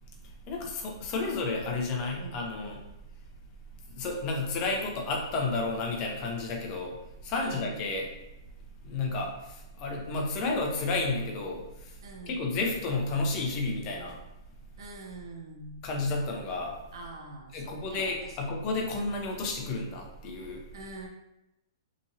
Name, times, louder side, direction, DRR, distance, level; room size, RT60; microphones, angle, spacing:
voice 1, 0.2-2.8 3.9-8.1 8.8-12.0 12.3-14.2 15.8-16.8 17.5-20.6, left 3 dB, 30° left, 1 dB, 0.5 m, -31 dB
voice 2, 7.3-7.8 12.0-12.5 14.8-15.8 16.9-18.4 20.7-21.1, right 2 dB, 70° right, 1 dB, 0.6 m, -44 dB
2.9 x 2.5 x 2.6 m, 0.93 s
hypercardioid pair, 155°, 2 cm